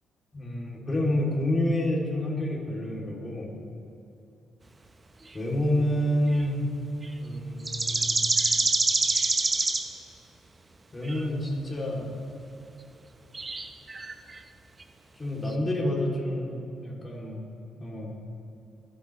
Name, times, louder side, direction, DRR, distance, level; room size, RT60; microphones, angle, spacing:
voice 1, 0.3-3.5 5.3-6.6 7.2-8.2 10.9-12.1 15.2-17.4 17.8-18.2, left 1 dB, 25° left, -2 dB, 2.8 m, -28 dB
sound 1, 6.3-6.5 7.0-7.1 7.7-9.9 11.0-11.3 13.3-14.4 14.8-14.9 15.5-15.6, right 3 dB, 25° right, 0.7 m, -26 dB
23.0 x 7.9 x 3.2 m, 2.8 s
cardioid pair, 90°, 0 cm